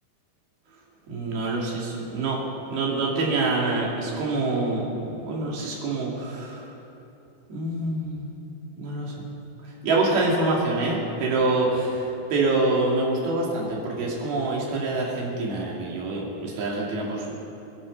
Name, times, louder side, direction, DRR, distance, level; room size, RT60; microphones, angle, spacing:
voice 1, 1.1-2.4 2.7-6.7 7.5-8.3 8.8-9.2 9.8-17.4, right 2 dB, 80° right, -3 dB, 4.4 m, -26 dB
27.5 x 11.0 x 4.1 m, 2.9 s
omnidirectional pair, 4.3 m